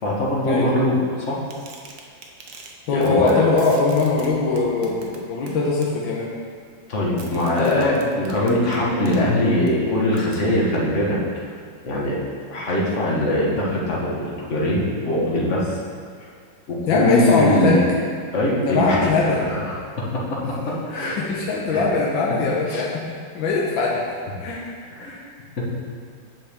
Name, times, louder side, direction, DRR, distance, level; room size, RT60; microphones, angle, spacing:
voice 1, 0.0-1.4 2.9-3.6 6.9-11.2 11.8-12.2 12.5-15.8 16.7-17.8 18.3-21.2 21.7-21.9 22.3-22.4 22.7-22.8 25.0-25.1, left 1 dB, 45° left, -4 dB, 1.3 m, -22 dB
sound 1, 1.5-2.7 3.0-3.3 3.6-5.9 7.2-9.2 9.7-9.8 10.2-10.4, right 5 dB, 65° right, 0.8 m, -40 dB
voice 2, 2.9-6.3 7.4-8.1 16.9-17.8 18.6-19.5 21.2-23.0 23.3-24.0 24.4-24.7 25.0-25.2, left 4 dB, 75° left, -4 dB, 1.5 m, -21 dB
7.7 x 6.0 x 3.5 m, 2.1 s
omnidirectional pair, 2.2 m